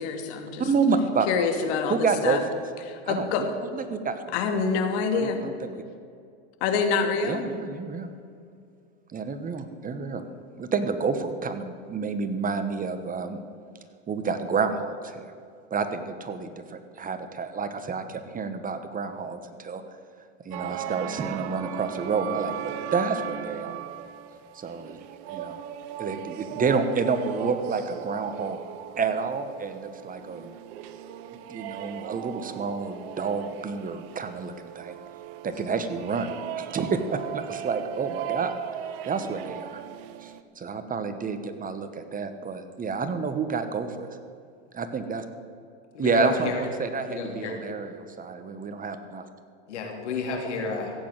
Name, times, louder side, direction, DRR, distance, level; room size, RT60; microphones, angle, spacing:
voice 1, 0.0-0.6 1.3-2.4 2.9-3.4 4.3-5.4 6.6-7.4, left 5 dB, 65° left, 5 dB, 2.6 m, -26 dB
voice 2, 0.6-1.3 1.9-2.4 3.0-4.2 5.1-5.8 7.2-8.1 9.1-10.2 10.6-13.4 14.1-15.3 15.7-19.8 20.4-23.8 24.5-25.0 25.3-25.6 26.0-28.6 29.0-30.5 31.5-35.0 35.4-38.6 39.1-39.8 40.2-44.2 44.7-45.2 46.0-49.3, right 5 dB, 25° right, 9 dB, 1.3 m, -29 dB
sound 1, 20.5-40.4, right 11 dB, 65° right, 1.1 m, -37 dB
voice 3, 45.9-46.7 47.1-47.6 49.7-50.9, left 4 dB, 85° left, 1 dB, 3.6 m, -31 dB
15.5 x 8.8 x 9.0 m, 2.3 s
hypercardioid pair, 105°, 34 cm